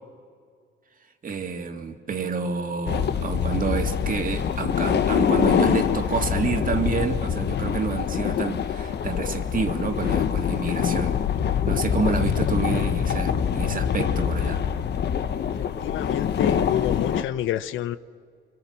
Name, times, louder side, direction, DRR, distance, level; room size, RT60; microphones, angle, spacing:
voice 1, 1.2-11.2 11.7-14.6, right 5 dB, 45° right, 4 dB, 2.1 m, -28 dB
sound 1, 2.9-17.2, left 8 dB, 60° left, 1.0 m, -24 dB
voice 2, 15.6-18.0, left 12 dB, 85° left, 15 dB, 0.7 m, -28 dB
26.0 x 23.5 x 7.5 m, 2.1 s
cardioid pair, 90°, 20 cm